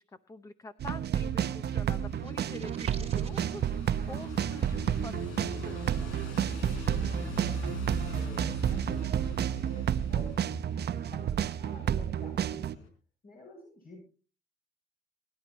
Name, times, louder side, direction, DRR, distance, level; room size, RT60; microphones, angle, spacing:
voice 1, 0.0-6.2, left 2 dB, 15° left, 11 dB, 0.8 m, -46 dB
sound 1, 0.8-12.8, right 10 dB, 55° right, 0.8 m, -31 dB
sound 2, 1.1-12.9, left 2 dB, 90° left, 4.8 m, -42 dB
sound 3, 2.2-3.6, right 5 dB, 30° right, 1.6 m, -46 dB
voice 2, 8.0-12.8 13.2-14.0, left 2 dB, 50° left, -2 dB, 7.8 m, -50 dB
23.5 x 11.0 x 3.0 m, 0.37 s
cardioid pair, 90°, 20 cm